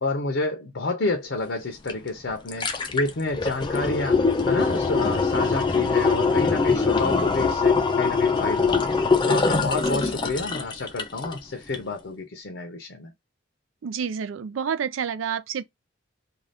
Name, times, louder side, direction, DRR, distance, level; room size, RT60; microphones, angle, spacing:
voice 1, 0.0-8.8 9.3-13.1, left 3 dB, 65° left, 0.6 m, -29 dB
sound 1, 1.9-2.0 2.3-11.4 11.7-11.8, left 4 dB, 25° left, 0.4 m, -23 dB
voice 2, 13.8-15.6, right 7 dB, 85° right, 0.4 m, -29 dB
2.6 x 2.3 x 3.3 m
head